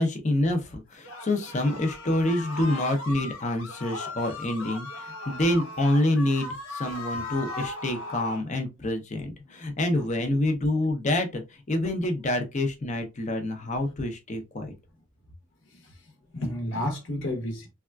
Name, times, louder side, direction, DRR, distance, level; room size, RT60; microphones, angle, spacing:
voice 1, 0.0-14.7, left 1 dB, 35° left, 0.6 m, -27 dB
sound 1, 1.0-8.4, left 2 dB, 90° left, 0.6 m, -37 dB
voice 2, 15.6-17.7, left 1 dB, 65° left, 0.9 m, -33 dB
3.4 x 2.3 x 2.3 m
head